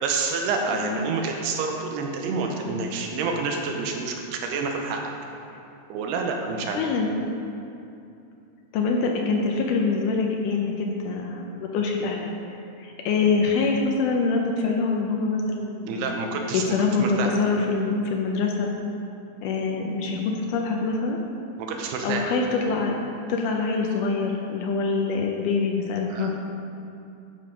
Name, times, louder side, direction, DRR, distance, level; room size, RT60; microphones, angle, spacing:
voice 1, 0.0-5.0 5.9-6.8 15.8-16.6 17.0-17.3 21.6-22.3 26.1-26.3, right 4 dB, 85° right, 2 dB, 2.9 m, -28 dB
voice 2, 0.7-1.0 6.7-7.1 8.7-12.3 12.8-16.2 16.5-18.7 19.4-21.2 22.0-22.9 23.3-26.4, left 4 dB, 85° left, 1 dB, 1.8 m, -25 dB
12.0 x 5.1 x 5.1 m, 2.6 s
omnidirectional pair, 4.6 m